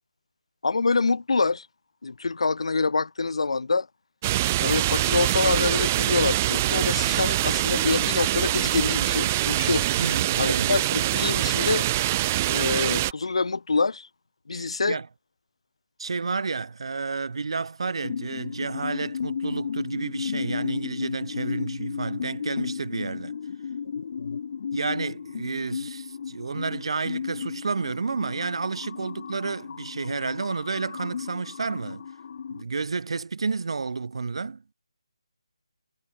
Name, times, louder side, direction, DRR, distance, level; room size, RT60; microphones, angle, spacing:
voice 1, 0.6-1.7 2.0-3.9 4.6-11.9 12.5-14.1 14.5-15.0 24.0-24.4, left 4 dB, 65° left, 1.3 m, -26 dB
sound 1, 4.2-13.1, right 15 dB, 20° right, 0.4 m, -24 dB
voice 2, 10.0-10.8 14.5-15.1 16.0-23.3 24.7-32.0 32.5-34.6, right 4 dB, 60° right, 1.1 m, -31 dB
sound 2, 18.0-32.6, left 7 dB, 40° left, 2.1 m, -34 dB
figure-of-eight pair, 160°, 3 cm